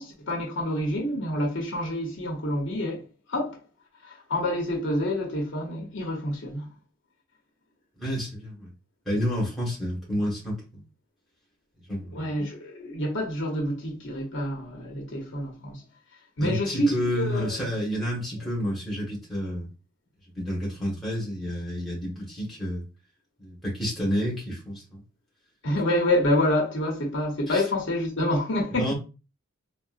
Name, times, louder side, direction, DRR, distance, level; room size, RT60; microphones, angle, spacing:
voice 1, 0.0-3.6 4.0-6.7 12.1-15.8 16.4-17.6 25.6-28.9, left 1 dB, 55° left, 0.8 m, -27 dB
voice 2, 8.0-8.7 9.0-10.5 11.9-12.3 16.4-19.7 20.3-22.8 23.4-25.0 27.5-27.6 28.8-28.9, equal, ahead, 1.1 m, -30 dB
3.8 x 2.1 x 2.4 m
head